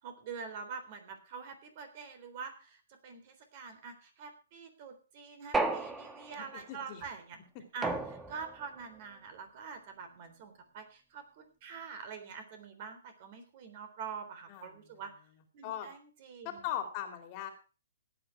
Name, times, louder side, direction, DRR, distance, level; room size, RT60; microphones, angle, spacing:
voice 1, 0.0-7.4 7.7-15.1 15.5-16.7, right 6 dB, 40° right, 8 dB, 3.6 m, -45 dB
sound 1, 5.5-6.5 7.8-8.7, right 2 dB, 10° right, 1.1 m, -33 dB
voice 2, 6.4-7.1 14.5-14.9 15.6-15.9 16.4-17.5, left 10 dB, 30° left, 6 dB, 2.6 m, -39 dB
16.5 x 9.2 x 4.7 m, 0.35 s
hypercardioid pair, 150°, 0 cm